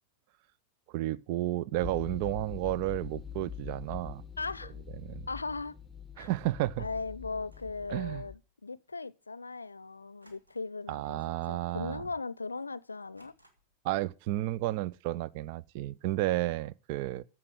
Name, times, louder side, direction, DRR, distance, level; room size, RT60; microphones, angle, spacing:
voice 1, 0.9-4.2 5.0-5.3 6.2-6.9 7.9-8.3 10.9-12.0 13.8-17.2, right 16 dB, 45° right, 0.5 m, -32 dB
sound 1, 1.8-8.4, left 8 dB, 10° left, 0.9 m, -44 dB
voice 2, 4.4-4.7 5.3-5.8 6.2-6.3 6.8-13.3, left 3 dB, 80° left, 0.6 m, -38 dB
sound 2, 7.3-7.8 10.2-10.9 11.2-11.5 11.9-12.0 13.1-13.9, right 1 dB, 80° right, 2.2 m, -64 dB
14.5 x 6.0 x 6.4 m
figure-of-eight pair, 90°, 0 cm